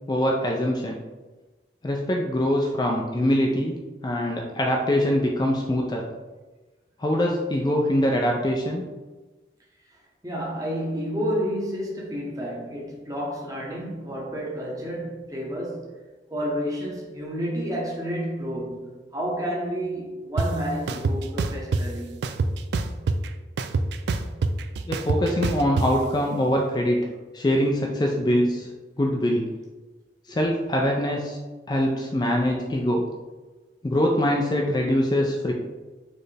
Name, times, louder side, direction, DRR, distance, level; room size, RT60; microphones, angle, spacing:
voice 1, 0.1-1.0 1.8-6.0 7.0-8.8 24.8-27.1 27.3-28.7 29.0-29.5 30.3-31.4 31.7-33.0 33.8-35.5, equal, 25° left, 0.3 m, -23 dB
voice 2, 10.2-16.0 16.3-22.2 30.3-30.4, equal, 20° right, 0.9 m, -30 dB
sound 1, 20.4-20.5 20.9-21.8 22.2-23.3 23.6-25.9, right 4 dB, 75° right, 0.3 m, -24 dB
4.3 x 3.2 x 3.3 m
head